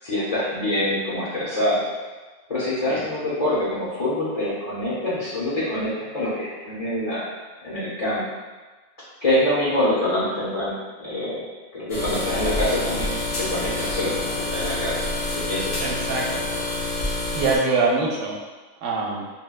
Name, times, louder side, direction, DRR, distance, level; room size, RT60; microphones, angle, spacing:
voice 1, 0.0-1.8 2.5-7.3 7.6-8.2 9.2-11.4 11.7-15.1 15.3-15.8, left 1 dB, 35° left, -9 dB, 0.8 m, -25 dB
sound 1, 11.9-17.6, left 2 dB, 60° left, 1.0 m, -27 dB
voice 2, 15.8-16.4 17.3-18.4 18.8-19.2, right 3 dB, 85° right, -2 dB, 0.9 m, -24 dB
3.8 x 2.1 x 2.3 m, 1.3 s
omnidirectional pair, 1.2 m